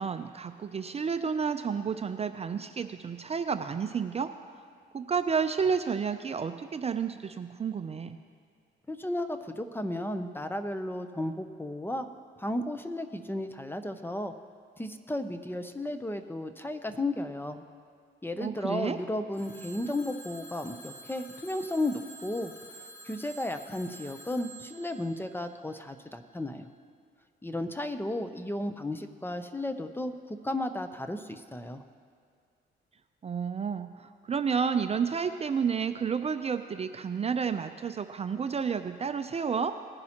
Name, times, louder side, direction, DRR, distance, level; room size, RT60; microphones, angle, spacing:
voice 1, 0.0-4.3 4.9-8.2 18.4-19.0 33.2-39.7, right 6 dB, 30° right, 8 dB, 0.5 m, -31 dB
voice 2, 8.9-12.1 12.4-14.3 14.8-17.6 18.2-22.5 23.0-26.7 27.4-31.8, left 1 dB, 10° left, 8 dB, 0.6 m, -34 dB
Telephone, 19.3-26.1, right 1 dB, 70° left, 2.9 m, -49 dB
19.0 x 10.5 x 2.9 m, 2.2 s
cardioid pair, 90°, 20 cm